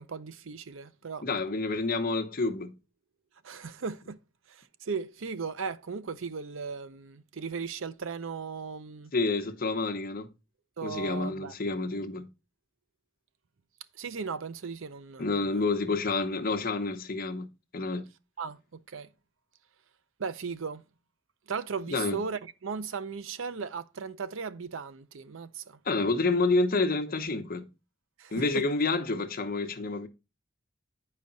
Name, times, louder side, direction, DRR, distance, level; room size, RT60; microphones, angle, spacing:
voice 1, 0.0-1.3 3.4-4.2 4.5-9.1 10.8-11.5 14.0-15.6 18.4-19.1 20.2-20.8 21.5-25.8 28.2-28.6, right 5 dB, 70° right, 0.6 m, -37 dB
voice 2, 1.2-2.7 9.1-10.3 10.8-12.3 15.2-17.5 17.7-18.1 21.9-22.2 25.9-27.7 28.3-30.1, left 3 dB, 45° left, 0.9 m, -28 dB
9.5 x 5.0 x 4.0 m
head